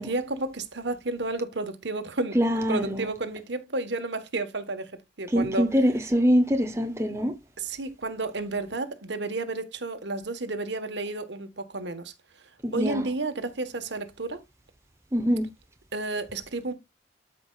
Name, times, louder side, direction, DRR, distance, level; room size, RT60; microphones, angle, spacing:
voice 1, 0.0-2.4 2.7-5.7 7.6-12.1 12.7-14.4 15.9-16.7, right 2 dB, 65° right, 1.3 m, -31 dB
voice 2, 2.3-3.1 5.3-7.3 12.6-13.1 15.1-15.5, equal, 15° right, 0.7 m, -24 dB
13.0 x 5.2 x 2.4 m
head